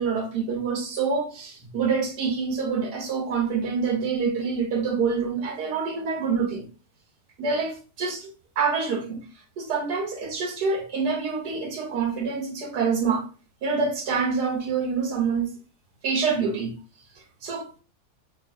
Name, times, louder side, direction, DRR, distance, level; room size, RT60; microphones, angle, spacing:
voice 1, 0.0-6.7 7.4-8.3 8.6-9.2 9.6-13.3 13.6-15.5 16.0-16.7 17.4-17.7, right 5 dB, 90° right, 1.6 m, -26 dB
4.4 x 3.1 x 2.5 m
omnidirectional pair, 1.7 m